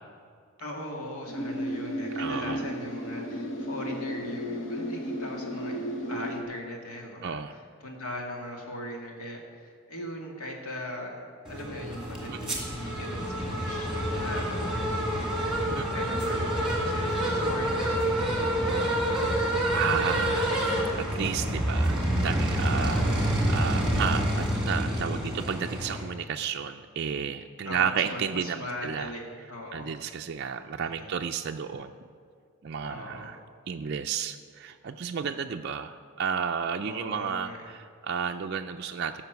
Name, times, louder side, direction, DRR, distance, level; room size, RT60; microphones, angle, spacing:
voice 1, 0.6-5.8 6.1-11.2 11.5-19.2 22.8-23.2 27.6-29.2 29.5-29.9 30.7-31.1 32.8-33.3 36.8-37.7, left 1 dB, 85° left, 0 dB, 2.2 m, -39 dB
sound 1, 1.3-6.4, equal, 60° left, 1.1 m, -33 dB
voice 2, 2.2-2.6 7.2-7.5 12.3-12.4 15.8-15.9 19.7-20.5 21.0-23.0 23.5-29.1 29.7-31.9 32.6-33.4 33.7-39.2, right 7 dB, 50° right, 4 dB, 0.3 m, -32 dB
sound 2, 11.4-26.0, right 1 dB, ahead, 2.0 m, -27 dB
14.0 x 5.8 x 8.0 m, 2.1 s
head